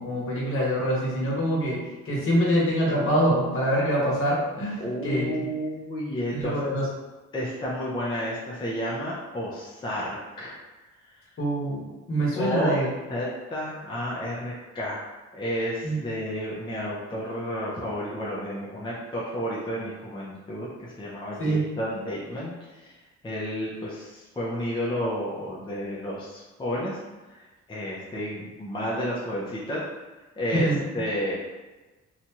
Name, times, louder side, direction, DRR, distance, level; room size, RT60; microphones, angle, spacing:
voice 1, 0.0-1.8 2.0-5.5 6.3-6.9 11.4-11.8 12.1-12.9 15.8-16.0 21.4-21.6 30.5-30.8, right 1 dB, 45° left, -5 dB, 1.2 m, -25 dB
voice 2, 4.8-6.7 7.3-10.6 12.3-12.8 13.1-15.0 15.3-22.9 23.2-27.0 27.3-29.8 30.4-31.4, equal, 15° left, -6 dB, 0.6 m, -31 dB
2.8 x 2.3 x 2.9 m, 1.2 s
cardioid pair, 90°, 30 cm